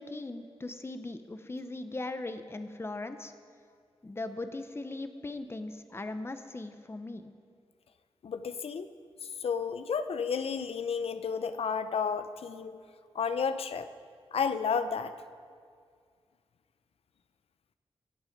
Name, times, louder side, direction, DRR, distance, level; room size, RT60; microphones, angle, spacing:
voice 1, 0.0-3.3 4.0-7.3, left 2 dB, 25° left, 9 dB, 0.8 m, -39 dB
voice 2, 8.2-8.9 9.2-12.8 13.1-13.9 14.3-15.1, left 6 dB, 85° left, 11 dB, 0.7 m, -32 dB
24.0 x 8.0 x 5.2 m, 2.2 s
wide cardioid pair, 105°, 10 cm